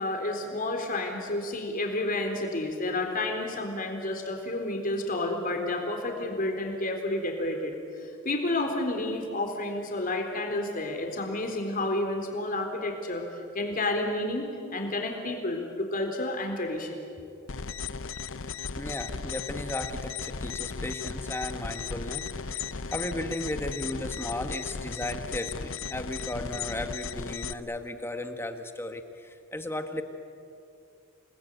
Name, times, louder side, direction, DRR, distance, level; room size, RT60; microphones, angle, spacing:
voice 1, 0.0-7.8 8.2-13.2 13.5-17.0, left 2 dB, 45° left, 3 dB, 3.9 m, -30 dB
sound 1, 17.5-27.5, left 5 dB, 65° left, 0.8 m, -36 dB
voice 2, 18.8-30.0, left 1 dB, 10° left, 7 dB, 1.4 m, -35 dB
28.0 x 20.5 x 9.2 m, 2.5 s
head